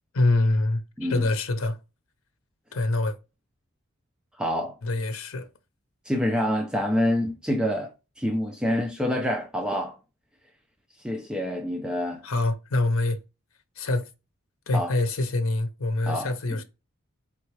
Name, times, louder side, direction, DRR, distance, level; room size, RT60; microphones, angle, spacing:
voice 1, 0.1-1.8 2.7-3.2 4.8-5.5 12.2-13.2 13.8-14.1 14.7-16.6, left 2 dB, 75° left, 0.8 m, -25 dB
voice 2, 4.4-4.8 6.0-10.0 11.0-12.2 14.7-14.9 16.1-16.6, left 1 dB, 5° right, 0.4 m, -27 dB
4.3 x 3.5 x 3.1 m
head